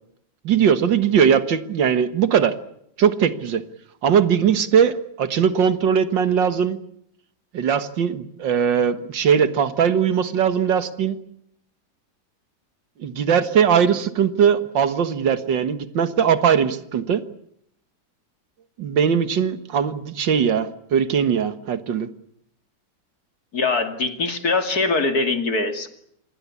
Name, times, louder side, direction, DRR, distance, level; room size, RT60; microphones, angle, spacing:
voice 1, 0.4-2.5 3.0-3.6 4.0-6.8 7.5-11.2 13.0-17.2 18.8-22.1, right 7 dB, 75° right, 12 dB, 2.1 m, -20 dB
voice 2, 23.5-25.9, left 3 dB, 55° left, 7 dB, 2.9 m, -22 dB
27.0 x 20.5 x 8.4 m, 0.73 s
omnidirectional pair, 2.0 m